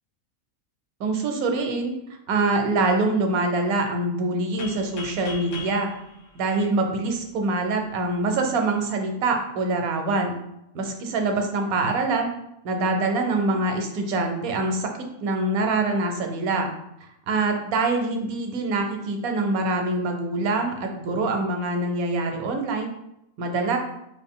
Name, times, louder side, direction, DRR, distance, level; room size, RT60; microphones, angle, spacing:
voice 1, 1.0-1.9 2.3-5.9 6.3-10.3 10.7-10.8 11.1-12.3 12.6-16.7 17.3-22.9 23.4-23.8, right 2 dB, 85° right, 4 dB, 1.1 m, -24 dB
sound 1, 4.6-7.3, left 3 dB, 70° left, 1.0 m, -40 dB
3.4 x 2.5 x 3.6 m, 0.83 s
omnidirectional pair, 1.5 m